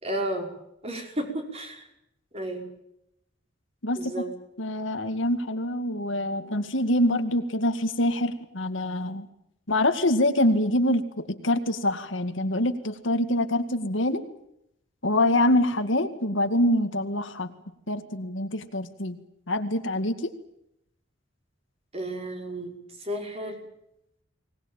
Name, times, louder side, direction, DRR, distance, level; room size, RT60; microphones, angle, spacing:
voice 1, 0.0-0.5 0.8-1.8 2.3-2.7 4.0-4.3 21.9-22.7 23.0-23.5, right 1 dB, 30° right, 3 dB, 5.5 m, -32 dB
voice 2, 4.6-9.3 9.7-14.3 15.0-17.5 17.9-19.2 19.5-20.3, left 1 dB, 80° left, 8 dB, 2.2 m, -25 dB
24.0 x 19.5 x 9.1 m, 0.80 s
head